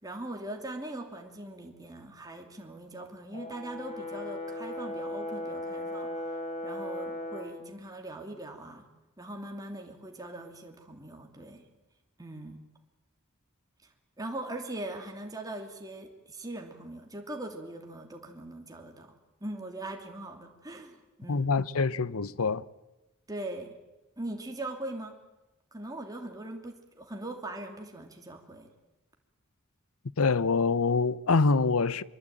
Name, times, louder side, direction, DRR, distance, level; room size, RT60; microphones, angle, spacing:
voice 1, 0.0-8.9 9.2-11.6 12.2-12.6 14.2-19.1 19.4-21.5 23.3-23.8 24.2-25.2 25.7-28.7, right 1 dB, 15° right, 2.9 m, -41 dB
Brass instrument, 3.3-7.6, left 1 dB, 30° left, 5.8 m, -37 dB
voice 2, 21.3-22.6 30.2-32.0, left 4 dB, 85° left, 0.8 m, -25 dB
25.0 x 23.0 x 9.0 m
head